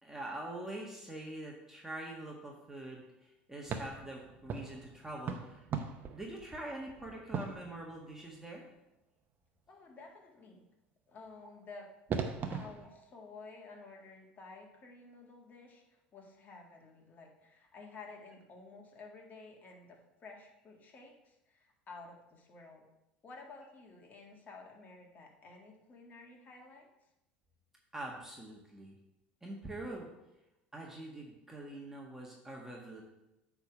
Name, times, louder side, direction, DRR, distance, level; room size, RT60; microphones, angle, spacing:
voice 1, 0.0-5.6 6.1-8.6 27.9-28.9 29.4-30.1 30.7-33.0, right 1 dB, 10° right, -2 dB, 1.6 m, -44 dB
sound 1, 3.7-8.4 11.4-11.5 12.1-12.9, right 6 dB, 40° right, 0.9 m, -40 dB
voice 2, 9.7-10.7 11.1-11.9 12.5-22.9 23.2-26.9, left 3 dB, 35° left, 0 dB, 2.0 m, -52 dB
8.7 x 3.6 x 5.9 m, 0.92 s
hypercardioid pair, 80°, 5 cm